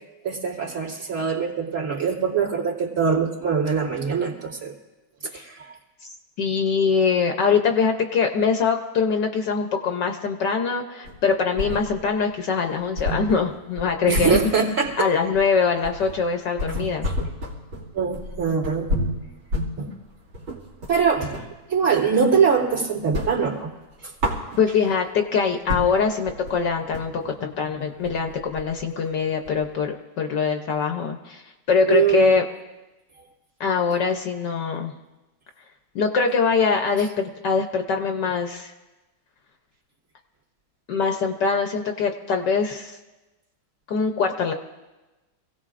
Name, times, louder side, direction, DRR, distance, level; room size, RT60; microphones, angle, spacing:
voice 1, 0.2-4.7 5.3-5.7 14.1-15.1 17.9-18.9 19.8-19.9 20.9-21.4 21.7-23.7 24.0-24.1 31.9-32.3, right 6 dB, 40° right, -1 dB, 2.8 m, -23 dB
voice 2, 6.0-14.4 15.0-17.1 24.6-31.4 31.7-32.4 33.6-34.9 35.9-38.7 40.9-43.0 43.9-44.5, left 5 dB, 65° left, 4 dB, 1.3 m, -23 dB
sound 1, 11.0-12.2 12.5-12.6 13.0-21.6 21.9-22.7 23.0-25.0 25.4-25.5 25.7-29.8, left 1 dB, 90° right, 3.2 m, -30 dB
26.0 x 17.0 x 2.5 m, 1.1 s
omnidirectional pair, 2.2 m